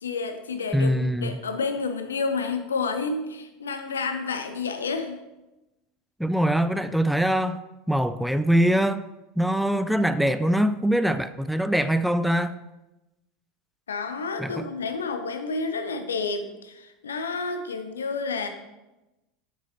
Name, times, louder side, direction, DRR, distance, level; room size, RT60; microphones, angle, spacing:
voice 1, 0.0-5.2 13.9-18.5, left 4 dB, 85° left, 8 dB, 0.6 m, -30 dB
voice 2, 0.7-1.3 6.2-7.6 7.9-9.0 9.4-12.5 14.4-14.7, equal, ahead, 12 dB, 0.3 m, -23 dB
7.1 x 6.1 x 2.8 m, 0.99 s
hypercardioid pair, 80°, 0 cm